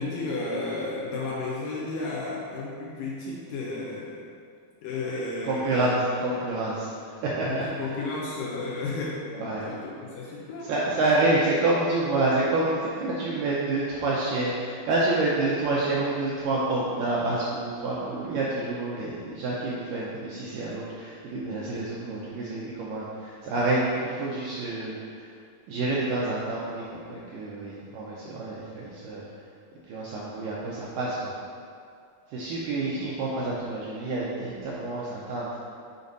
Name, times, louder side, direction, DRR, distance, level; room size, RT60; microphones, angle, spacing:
voice 1, 0.0-4.2 4.8-5.9 7.3-9.3 9.6-10.7 32.8-33.0, left 3 dB, 75° left, -4 dB, 2.2 m, -33 dB
voice 2, 5.5-6.9 7.2-7.6 9.3-9.7 10.7-25.2 25.7-29.3 29.9-31.4 32.3-35.5, right 2 dB, 85° right, -5 dB, 1.9 m, -28 dB
7.0 x 5.1 x 4.0 m, 2.3 s
omnidirectional pair, 4.6 m